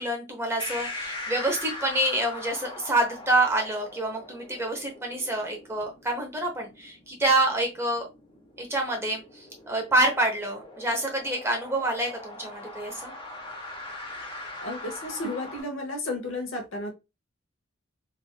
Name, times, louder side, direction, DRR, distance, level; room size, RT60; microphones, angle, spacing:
voice 1, 0.0-8.1 8.6-13.1, right 1 dB, 15° right, 1 dB, 0.8 m, -27 dB
sound 1, 0.6-15.6, left 2 dB, 25° left, 0.9 m, -41 dB
voice 2, 14.6-16.9, left 2 dB, 75° left, 4 dB, 0.9 m, -33 dB
3.3 x 2.5 x 2.2 m, 0.24 s
head